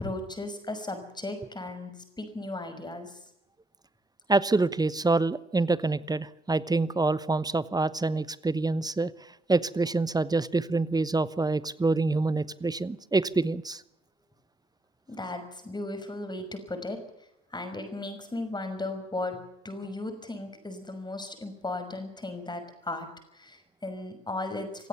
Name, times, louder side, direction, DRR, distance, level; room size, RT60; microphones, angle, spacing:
voice 1, 0.0-3.2 15.1-17.0 17.5-24.9, left 2 dB, 10° left, 7 dB, 5.9 m, -36 dB
voice 2, 4.3-9.1 9.5-13.8, right 3 dB, 10° right, 18 dB, 1.0 m, -26 dB
27.0 x 16.0 x 7.2 m, 0.82 s
figure-of-eight pair, 65°, 35 cm